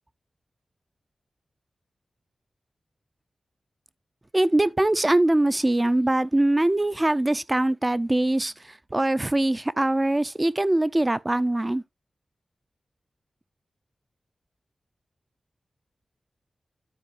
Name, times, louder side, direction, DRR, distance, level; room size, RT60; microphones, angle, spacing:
voice 1, 4.3-11.8, right 1 dB, 25° right, 0.5 m, -22 dB
12.0 x 4.6 x 2.6 m
wide cardioid pair, 70°, 0 cm